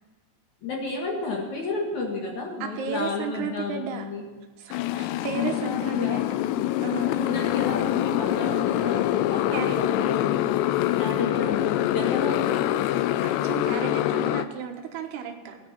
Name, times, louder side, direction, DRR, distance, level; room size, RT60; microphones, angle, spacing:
voice 1, 0.6-4.2 5.3-6.5 7.1-10.4 11.0-12.8, left 3 dB, 55° left, 0 dB, 2.6 m, -32 dB
voice 2, 2.6-4.1 4.6-6.3 6.8-7.2 9.5-9.8 13.2-15.6, right 6 dB, 75° right, 4 dB, 3.2 m, -33 dB
Motorcycle, 4.7-14.5, left 13 dB, 85° left, 2.8 m, -25 dB
17.0 x 10.0 x 6.0 m, 1.3 s
omnidirectional pair, 4.9 m